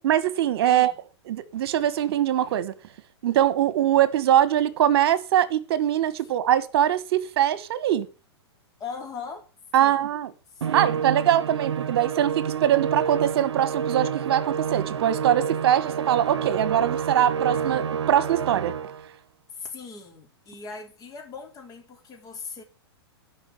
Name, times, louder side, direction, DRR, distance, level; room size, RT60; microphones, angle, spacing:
voice 1, 0.0-0.9 1.3-2.7 3.2-8.1 9.7-10.3 10.7-18.7, right 11 dB, 60° right, 1.4 m, -22 dB
voice 2, 0.7-1.0 8.8-9.5 9.8-10.1 10.5-10.9 19.5-22.6, left 5 dB, 25° left, 3.8 m, -39 dB
Musical instrument, 10.6-19.1, right 7 dB, 85° right, 0.7 m, -29 dB
11.0 x 5.6 x 7.6 m
hypercardioid pair, 120°, 14 cm